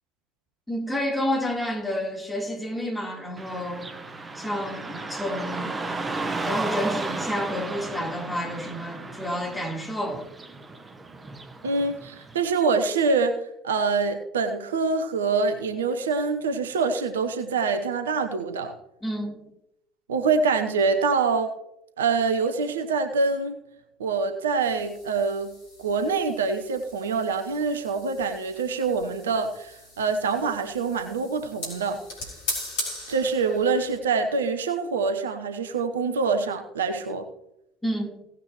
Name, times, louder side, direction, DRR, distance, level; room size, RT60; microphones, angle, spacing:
voice 1, 0.7-3.9 4.4-5.7 6.4-10.3 19.0-19.4 37.8-38.2, equal, 10° left, 3.5 m, -30 dB
Car passing by / Traffic noise roadway noise, 3.4-12.4, right 3 dB, 20° right, 1.3 m, -34 dB
voice 2, 11.6-13.4 13.6-18.7 20.1-21.5 22.0-23.6 24.0-25.5 25.8-32.0 33.1-37.3, right 4 dB, 75° right, 0.8 m, -25 dB
sound 1, 24.6-34.0, left 1 dB, 70° left, 3.7 m, -39 dB
17.0 x 9.0 x 3.0 m
figure-of-eight pair, 60°, 0 cm